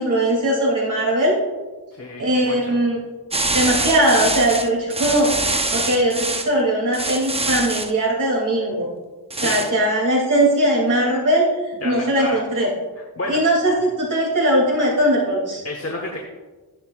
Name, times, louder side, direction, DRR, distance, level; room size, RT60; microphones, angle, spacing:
voice 1, 0.0-1.4 2.2-3.0 3.5-5.3 5.7-8.9 9.4-11.5 11.8-12.7 13.3-15.6, right 1 dB, 50° right, -3 dB, 2.7 m, -19 dB
voice 2, 1.9-2.8 9.3-9.6 11.8-12.4 13.2-13.4 15.6-16.2, left 2 dB, 35° left, 1 dB, 1.2 m, -30 dB
sound 1, 3.3-6.5 6.9-7.9 9.3-9.7, right 2 dB, 15° right, 0.6 m, -24 dB
14.0 x 10.5 x 2.4 m, 1.3 s
wide cardioid pair, 150°, 39 cm